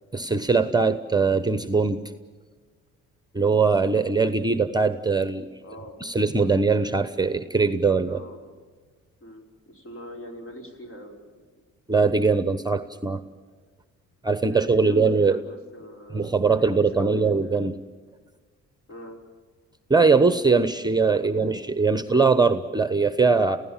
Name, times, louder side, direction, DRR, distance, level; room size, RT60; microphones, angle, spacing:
voice 1, 0.1-2.0 3.3-5.5 6.0-8.2 11.9-13.2 14.2-15.4 16.1-17.7 19.9-23.6, right 4 dB, 15° right, 11 dB, 1.0 m, -21 dB
voice 2, 5.6-6.0 7.9-8.6 9.2-11.5 14.5-17.7 18.9-19.2 21.4-21.6, equal, 45° left, 3 dB, 5.6 m, -42 dB
29.0 x 16.5 x 7.4 m, 1.5 s
cardioid pair, 90°, 30 cm